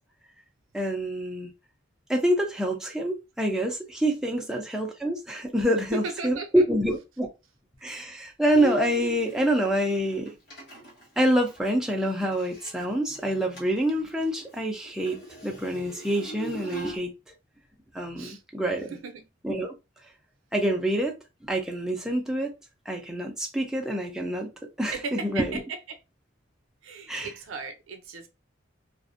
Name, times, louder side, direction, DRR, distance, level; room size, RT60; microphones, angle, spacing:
voice 1, 0.7-1.5 2.1-7.3 7.8-10.3 11.2-17.1 17.9-18.9 19.4-19.7 20.5-21.1 21.4-22.5 22.9-24.5 24.8-25.6 27.1-27.3, right 1 dB, 5° right, 0.3 m, -26 dB
voice 2, 5.9-6.6 18.2-18.4 18.9-19.3 24.9-26.0 26.8-28.3, right 3 dB, 80° right, 0.5 m, -36 dB
Bowed string instrument, 8.5-12.8 13.1-13.2 13.5-13.8 14.1-17.0, left 1 dB, 55° left, 1.1 m, -39 dB
2.4 x 2.1 x 2.4 m
head